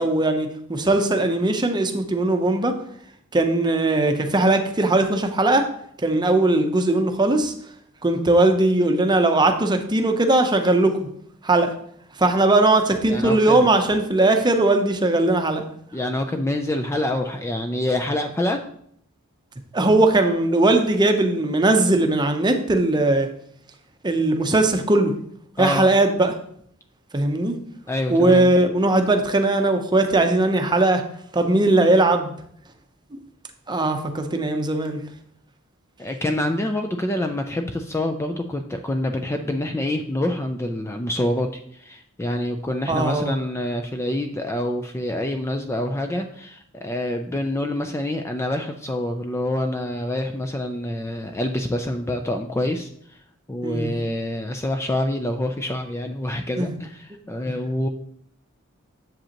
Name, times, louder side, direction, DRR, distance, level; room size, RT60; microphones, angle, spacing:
voice 1, 0.0-2.7 3.3-5.7 6.0-7.5 8.0-11.1 11.4-11.7 12.2-15.6 19.7-23.3 24.0-25.1 25.6-26.3 27.1-27.6 28.1-31.0 31.3-32.3 33.7-35.0 42.9-43.3 53.6-53.9 56.6-56.7, right 2 dB, 20° right, 6 dB, 0.7 m, -19 dB
voice 2, 13.1-13.7 15.9-18.6 25.6-25.9 27.9-28.5 36.0-52.9 53.5-57.9, left 1 dB, 15° left, 6 dB, 0.4 m, -26 dB
7.7 x 7.4 x 2.9 m, 0.66 s
head